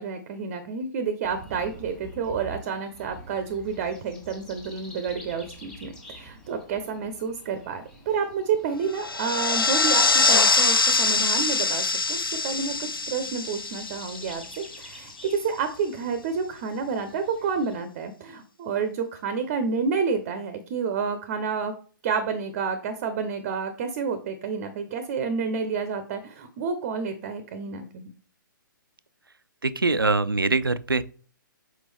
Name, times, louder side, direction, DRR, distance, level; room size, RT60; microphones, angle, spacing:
voice 1, 0.0-21.7 22.0-28.1, right 5 dB, 35° right, 0.8 m, -29 dB
sound 1, 1.2-17.8, equal, 5° left, 1.6 m, -48 dB
sound 2, 8.9-14.8, left 4 dB, 85° left, 0.4 m, -23 dB
voice 2, 29.6-31.0, right 3 dB, 85° right, 0.5 m, -23 dB
6.1 x 4.9 x 3.3 m
figure-of-eight pair, 125°, 11 cm